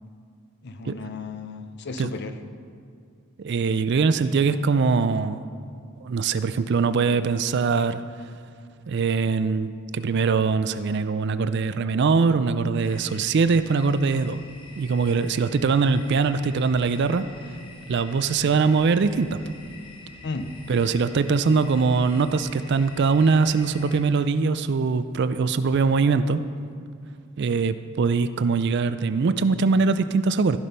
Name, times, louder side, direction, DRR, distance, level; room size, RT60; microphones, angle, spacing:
voice 1, 0.6-2.4 20.2-20.5, left 3 dB, 50° left, 9 dB, 0.7 m, -34 dB
voice 2, 3.4-5.4 6.0-8.0 8.9-14.4 14.8-17.3 17.9-19.4 20.7-26.4 27.4-30.6, right 4 dB, 50° right, 12 dB, 0.4 m, -22 dB
sound 1, 12.8-24.0, left 3 dB, 20° left, 1.2 m, -46 dB
14.5 x 6.1 x 5.4 m, 2.2 s
head